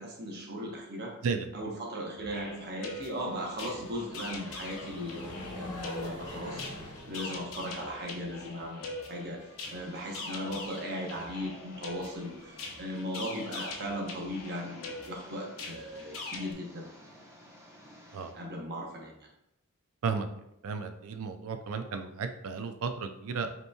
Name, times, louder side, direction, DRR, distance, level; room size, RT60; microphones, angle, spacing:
voice 1, 0.0-1.2 1.5-16.9 18.3-19.3, equal, 50° right, 0 dB, 0.8 m, -38 dB
sound 1, 2.2-13.2, left 1 dB, 80° left, 1.0 m, -47 dB
sound 2, 2.2-16.5, left 3 dB, 65° left, 0.7 m, -43 dB
Engine, 9.6-18.3, equal, 15° right, 0.9 m, -54 dB
voice 2, 20.6-23.5, right 5 dB, 65° right, 7 dB, 0.4 m, -33 dB
5.3 x 2.9 x 2.3 m, 0.78 s
head